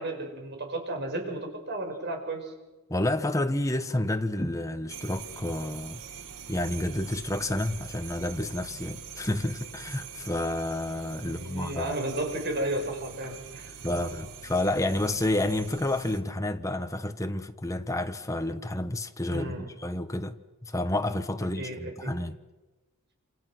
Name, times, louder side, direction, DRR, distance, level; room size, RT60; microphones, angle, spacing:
voice 1, 0.0-2.5 11.2-14.1 19.3-19.7 21.5-22.1, right 1 dB, 50° right, 5.5 m, -33 dB
voice 2, 2.9-6.0 6.5-11.9 13.8-20.3 20.6-22.4, left 1 dB, 15° left, 1.2 m, -30 dB
sound 1, 4.9-16.2, right 6 dB, 75° right, 1.6 m, -44 dB
28.0 x 27.0 x 6.2 m
head